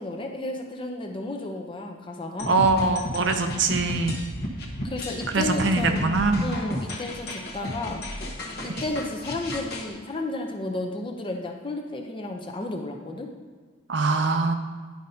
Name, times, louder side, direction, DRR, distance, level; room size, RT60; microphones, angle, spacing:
voice 1, 0.0-2.6 4.8-6.1 6.4-8.0 8.6-13.3, left 2 dB, 25° left, 2 dB, 0.6 m, -32 dB
sound 1, 2.4-9.9, equal, 50° left, 1.0 m, -33 dB
voice 2, 2.5-4.2 5.3-6.5 13.9-14.5, right 3 dB, 60° right, 6 dB, 0.6 m, -23 dB
10.5 x 5.2 x 2.8 m, 1.5 s
head